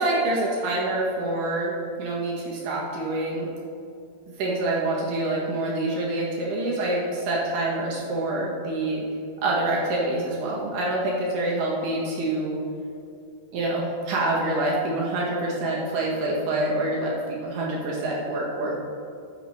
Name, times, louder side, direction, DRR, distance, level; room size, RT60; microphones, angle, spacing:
voice 1, 0.0-3.5 4.3-9.0 9.4-12.6 13.5-18.8, right 2 dB, 60° right, -4 dB, 2.9 m, -26 dB
14.0 x 7.8 x 3.3 m, 2.4 s
omnidirectional pair, 5.2 m